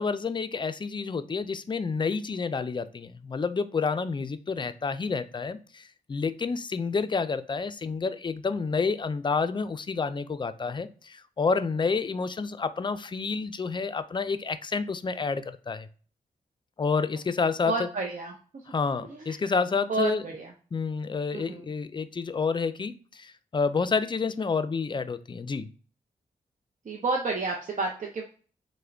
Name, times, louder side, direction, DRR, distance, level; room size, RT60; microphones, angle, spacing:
voice 1, 0.0-5.8 6.1-15.9 16.8-17.9 18.7-20.2 20.7-25.7, left 4 dB, 30° left, 0.4 m, -29 dB
voice 2, 17.6-18.7 19.0-19.4 19.9-20.5 21.3-21.7 26.8-28.3, right 3 dB, 55° right, 0.6 m, -31 dB
3.4 x 2.2 x 3.3 m
cardioid pair, 45°, 16 cm